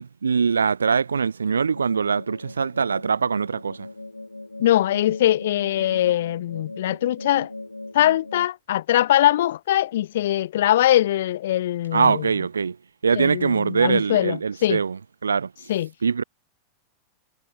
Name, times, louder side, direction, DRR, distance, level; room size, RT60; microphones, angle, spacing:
voice 1, 0.0-3.9 11.9-12.8 13.0-15.7 16.0-16.2, right 5 dB, 75° right, 3.5 m, -23 dB
sound 1, 1.7-8.5, left 2 dB, 85° left, 3.7 m, -39 dB
voice 2, 4.6-7.5 7.9-12.2 13.2-14.8 15.7-15.9, left 13 dB, 60° left, 1.7 m, -22 dB
figure-of-eight pair, 90°, 0 cm